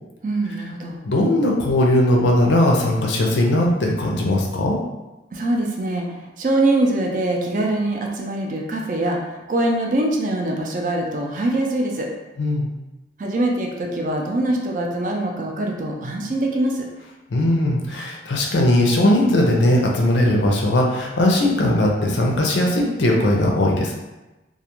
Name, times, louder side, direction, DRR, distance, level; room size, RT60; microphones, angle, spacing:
voice 1, 0.2-1.0 5.3-12.1 13.2-16.9, right 1 dB, 45° right, 1 dB, 0.4 m, -23 dB
voice 2, 1.1-4.8 12.4-12.7 17.3-24.0, left 1 dB, 80° left, 0 dB, 0.5 m, -19 dB
2.4 x 2.3 x 2.9 m, 1.1 s
head